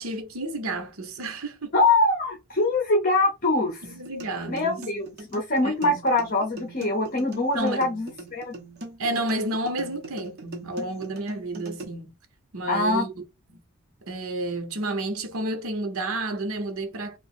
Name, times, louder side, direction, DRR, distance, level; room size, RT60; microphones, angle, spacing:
voice 1, 0.0-1.7 3.9-4.8 5.6-6.0 7.5-7.9 9.0-12.1 12.5-13.1 13.5-13.6 14.0-17.2, right 2 dB, 75° right, 0.9 m, -31 dB
voice 2, 1.7-4.0 4.5-8.5 12.7-13.1, left 2 dB, 40° left, 0.8 m, -23 dB
sound 1, 3.8-11.8, right 1 dB, 50° right, 1.0 m, -40 dB
2.9 x 2.4 x 4.3 m
head